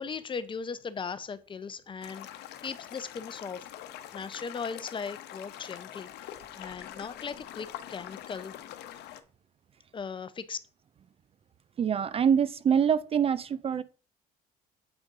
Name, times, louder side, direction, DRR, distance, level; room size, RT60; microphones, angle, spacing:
voice 1, 0.0-3.7 4.1-8.5 9.9-10.6, left 5 dB, 30° left, 0.6 m, -38 dB
sound 1, 2.0-9.2, left 12 dB, 80° left, 0.8 m, -44 dB
voice 2, 11.8-13.8, right 7 dB, 35° right, 0.4 m, -25 dB
8.0 x 5.2 x 3.6 m
cardioid pair, 110°, 17 cm